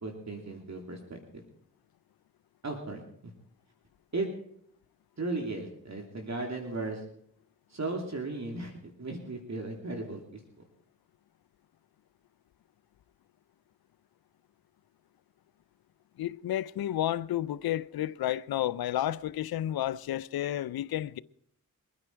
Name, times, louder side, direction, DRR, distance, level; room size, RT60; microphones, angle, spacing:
voice 1, 0.0-1.4 2.6-3.3 4.1-4.3 5.2-7.0 7.7-10.4, right 2 dB, 45° right, 3.1 m, -36 dB
voice 2, 16.2-21.2, left 12 dB, 80° left, 0.7 m, -31 dB
23.5 x 9.8 x 4.6 m
cardioid pair, 50°, 36 cm